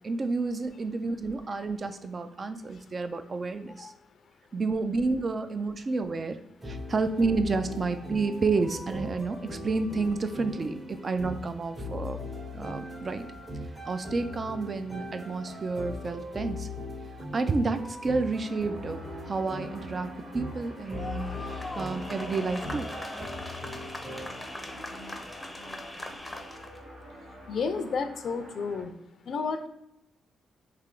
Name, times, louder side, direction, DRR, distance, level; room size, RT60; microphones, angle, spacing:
voice 1, 0.0-3.9 4.5-6.4 6.6-12.2 12.5-13.2 13.9-16.7 17.3-19.0 19.3-22.9, right 3 dB, 40° right, 9 dB, 0.4 m, -30 dB
sound 1, 6.6-24.3, left 1 dB, 20° right, 0.8 m, -40 dB
sound 2, 17.8-28.8, equal, 70° right, 1.3 m, -47 dB
sound 3, 20.9-26.8, left 1 dB, 10° left, 0.6 m, -40 dB
voice 2, 27.5-28.9 29.3-29.7, left 5 dB, 60° left, 8 dB, 0.4 m, -31 dB
3.2 x 2.8 x 3.8 m, 0.86 s
cardioid pair, 85°, 0 cm